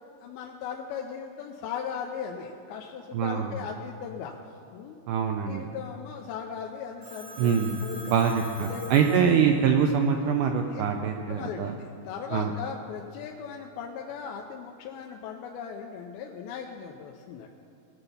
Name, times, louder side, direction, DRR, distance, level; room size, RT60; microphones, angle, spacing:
voice 1, 0.2-4.4 4.7-5.0 5.5-7.5 7.8-8.2 8.6-9.2 10.7-10.9 11.3-17.5, left 7 dB, 90° left, 1 dB, 2.5 m, -38 dB
voice 2, 3.1-3.5 5.1-5.6 7.4-11.7 12.3-12.5, right 7 dB, 85° right, 3 dB, 1.8 m, -24 dB
Telephone, 7.0-9.8, right 1 dB, 20° right, 3.3 m, -44 dB
19.5 x 6.8 x 5.6 m, 2.7 s
omnidirectional pair, 4.4 m